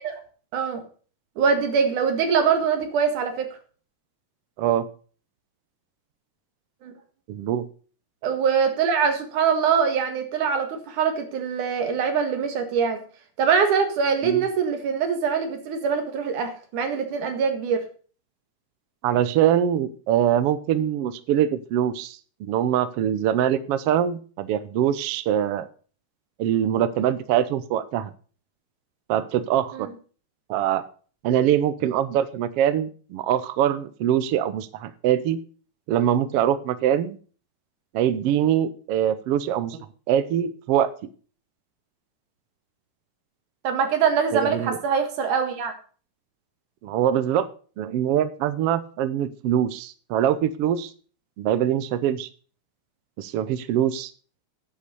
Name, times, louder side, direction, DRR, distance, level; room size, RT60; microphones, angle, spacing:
voice 1, 1.4-3.5 6.8-6.9 8.2-13.0 13.4-17.8 29.7-29.9 43.6-45.7, right 6 dB, 85° right, 6 dB, 3.4 m, -23 dB
voice 2, 7.3-7.7 14.2-14.4 19.0-25.7 26.4-28.1 29.1-29.9 30.5-30.8 31.2-35.4 35.9-37.2 37.9-39.8 40.1-40.9 44.3-44.8 46.8-47.5 47.8-50.9 51.4-52.3 53.2-54.1, right 10 dB, 70° right, 14 dB, 1.5 m, -23 dB
9.9 x 8.1 x 6.8 m, 0.40 s
omnidirectional pair, 3.5 m